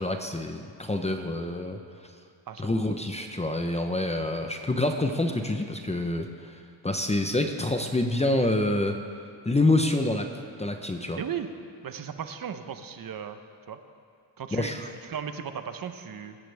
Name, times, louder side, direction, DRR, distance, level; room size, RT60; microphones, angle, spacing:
voice 1, 0.0-1.8 2.6-6.5 6.8-9.0 9.4-10.3 10.6-11.2 14.5-14.9, left 2 dB, 15° left, 5 dB, 0.9 m, -27 dB
voice 2, 11.2-11.5 11.8-13.4 13.7-13.8 14.4-14.7 15.1-16.4, right 8 dB, 45° right, 9 dB, 1.0 m, -36 dB
23.0 x 10.0 x 3.5 m, 2.3 s
cardioid pair, 95°, 46 cm